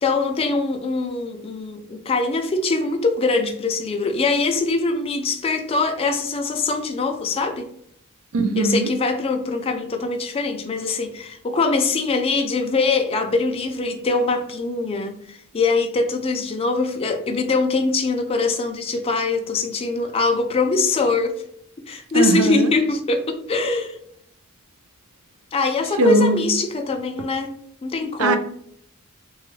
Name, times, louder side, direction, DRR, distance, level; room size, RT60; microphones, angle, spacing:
voice 1, 0.0-7.6 8.6-21.4 21.9-23.9 25.5-27.5 27.8-28.4, left 3 dB, 25° left, 0.4 m, -23 dB
voice 2, 8.3-8.9 22.1-22.7 26.0-26.4 28.2-28.4, right 2 dB, 75° right, 0.4 m, -19 dB
2.9 x 2.3 x 3.1 m
head